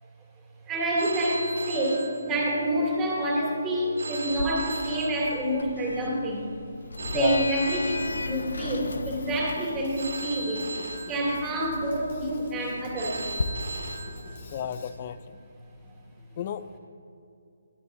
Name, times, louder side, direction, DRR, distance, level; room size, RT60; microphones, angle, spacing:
voice 1, 0.6-6.5 7.1-10.7 11.1-13.2, right 1 dB, 10° right, -4 dB, 2.6 m, -27 dB
Telephone, 1.0-2.8 4.0-5.8 7.0-8.8 10.0-11.8 13.0-14.8, right 2 dB, 75° right, 1.5 m, -38 dB
Sliding door, 4.3-13.4, left 3 dB, 90° left, 0.8 m, -37 dB
voice 2, 7.1-7.5 14.5-15.4 16.4-16.8, left 9 dB, 30° left, 15 dB, 0.4 m, -32 dB
Drum kit, 8.9-14.9, left 1 dB, 50° left, 2.3 m, -46 dB
22.0 x 10.5 x 2.7 m, 2.6 s
hypercardioid pair, 165°, 0 cm